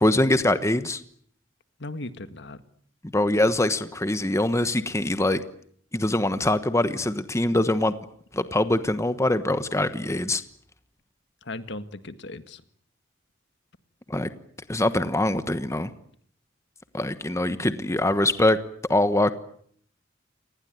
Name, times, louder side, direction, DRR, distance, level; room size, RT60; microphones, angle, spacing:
voice 1, 0.0-1.0 3.1-5.4 5.9-7.9 8.3-10.4 14.1-14.3 14.7-15.9 16.9-18.6 18.9-19.3, left 1 dB, 15° left, 11 dB, 1.2 m, -23 dB
voice 2, 1.8-2.6 11.4-12.6, left 2 dB, 65° left, 11 dB, 1.8 m, -37 dB
28.5 x 20.0 x 9.3 m, 0.63 s
head